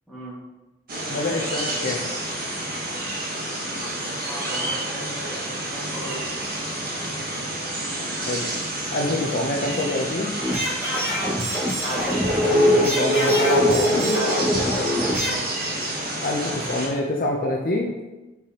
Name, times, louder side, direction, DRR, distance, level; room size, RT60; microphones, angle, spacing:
voice 1, 0.1-0.4 4.1-6.4 7.0-7.7 11.9-12.3 15.2-15.6, right 1 dB, 5° left, -8 dB, 2.0 m, -38 dB
sound 1, 0.9-16.9, equal, 50° right, 1.3 m, -26 dB
voice 2, 1.1-2.0 8.3-8.5 8.9-10.3 12.5-14.3 16.2-17.9, left 2 dB, 50° left, -1 dB, 0.6 m, -26 dB
sound 2, 10.4-15.3, equal, 10° right, 1.7 m, -25 dB
7.2 x 4.8 x 2.9 m, 1.1 s
head